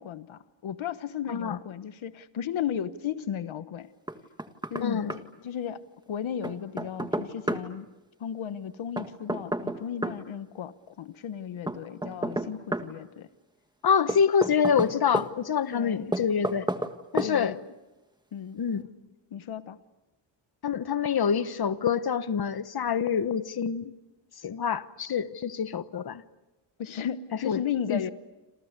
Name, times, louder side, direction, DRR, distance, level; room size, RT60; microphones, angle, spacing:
voice 1, 0.0-3.9 4.7-7.9 8.2-13.3 15.7-16.1 17.2-17.6 18.3-18.6 19.3-19.8 26.8-28.1, left 8 dB, 80° left, 1.2 m, -35 dB
voice 2, 1.3-1.6 4.8-5.1 13.8-16.7 17.1-17.5 18.6-18.9 20.6-23.9 24.4-26.2 27.4-27.6 27.9-28.1, left 7 dB, 50° left, 1.2 m, -26 dB
Knock, 4.1-4.8 5.1-5.2 6.4-7.6 9.0-10.2 11.7-12.9 14.1-15.3 16.1-16.9 17.2-17.3, right 1 dB, 10° right, 1.5 m, -30 dB
28.5 x 27.5 x 6.7 m
wide cardioid pair, 125°, 47 cm